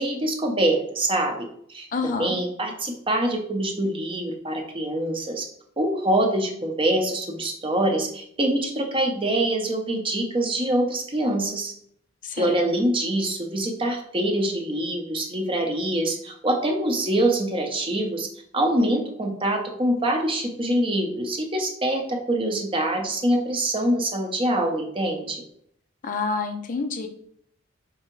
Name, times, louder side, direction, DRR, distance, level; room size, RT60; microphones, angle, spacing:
voice 1, 0.0-5.5 5.8-11.7 12.4-18.3 18.5-25.4, right 1 dB, 25° right, 2 dB, 0.6 m, -25 dB
voice 2, 1.9-2.4 12.2-12.6 26.0-27.1, left 4 dB, 40° left, 6 dB, 0.4 m, -28 dB
4.7 x 3.3 x 3.0 m, 0.67 s
head